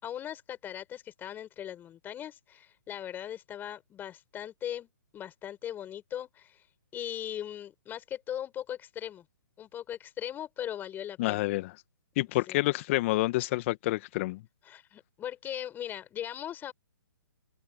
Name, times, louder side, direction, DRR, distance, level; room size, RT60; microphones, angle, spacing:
voice 1, 0.0-6.6 6.9-9.2 9.6-11.4 12.5-12.6 14.7-16.7, left 10 dB, 15° left, 4.8 m, -39 dB
voice 2, 11.2-11.7 12.2-14.4, left 19 dB, 35° left, 1.7 m, -28 dB
figure-of-eight pair, 135°, 11 cm